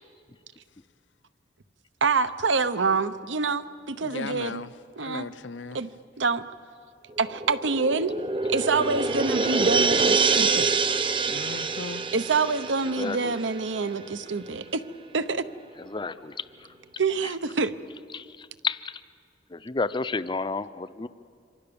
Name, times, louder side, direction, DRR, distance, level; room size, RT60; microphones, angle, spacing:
voice 1, 2.0-4.6 5.0-5.3 5.7-5.9 6.2-6.4 7.2-8.1 8.5-10.7 12.1-14.8 15.1-15.4 17.0-17.7, right 4 dB, 85° right, 0.9 m, -26 dB
voice 2, 4.0-5.8 11.3-12.1, left 3 dB, 85° left, 0.8 m, -37 dB
sound 1, 7.2-14.2 14.5-14.6, right 4 dB, 30° right, 0.8 m, -26 dB
voice 3, 13.0-13.3 15.9-16.3 18.1-18.2 18.6-18.9 19.5-21.1, left 4 dB, 25° left, 0.5 m, -30 dB
27.0 x 25.0 x 7.0 m
head